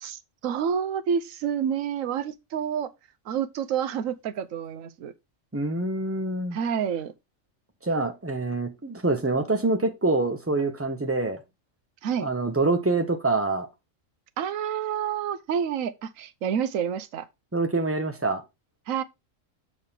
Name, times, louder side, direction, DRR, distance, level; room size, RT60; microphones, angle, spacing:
voice 1, 0.0-2.9 3.3-5.1 6.5-7.1 12.0-12.3 14.4-17.3 18.9-19.0, right 8 dB, 80° right, 1.1 m, -28 dB
voice 2, 5.5-6.6 7.8-11.4 12.2-13.7 17.5-18.4, right 3 dB, 10° right, 1.0 m, -25 dB
6.5 x 6.4 x 3.7 m
omnidirectional pair, 1.4 m